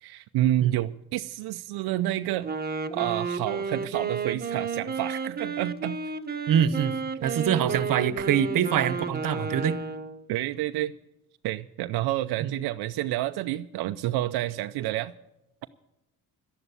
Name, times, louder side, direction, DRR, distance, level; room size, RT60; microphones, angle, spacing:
voice 1, 0.0-2.5 2.9-6.0 10.3-10.9 11.4-15.1, right 14 dB, 90° right, 8 dB, 0.6 m, -29 dB
Wind instrument woodwind instrument, 2.3-10.2, right 5 dB, 25° right, 1.1 m, -32 dB
voice 2, 6.5-6.9 7.2-9.8 12.4-12.5, right 9 dB, 60° right, 16 dB, 1.0 m, -24 dB
12.5 x 11.0 x 8.2 m, 0.87 s
cardioid pair, 85°, 37 cm